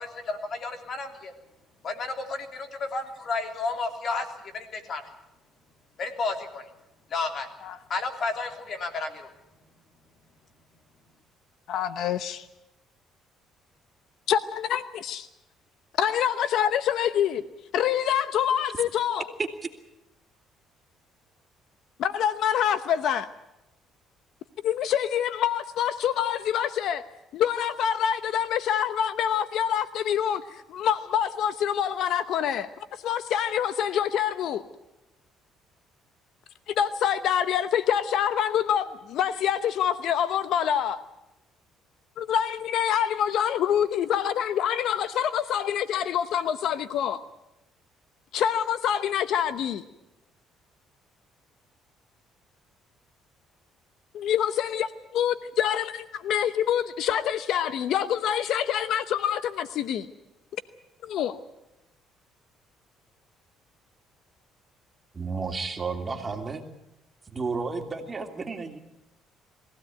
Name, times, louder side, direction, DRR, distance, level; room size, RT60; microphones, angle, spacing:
voice 1, 0.0-1.3 1.8-5.1 6.0-6.7 7.1-7.5 7.9-9.3, left 3 dB, 50° left, 3.2 m, -32 dB
voice 2, 11.7-12.5 14.3-15.3 16.0-17.4 17.7-19.2 22.0-23.3 24.6-27.0 27.3-34.6 36.7-41.0 42.2-47.2 48.3-49.8 54.1-60.1 61.0-61.4, left 9 dB, 70° left, 0.9 m, -26 dB
voice 3, 65.1-66.6 67.3-68.8, right 4 dB, 25° right, 2.9 m, -32 dB
22.0 x 16.0 x 9.3 m
cardioid pair, 95°, 0 cm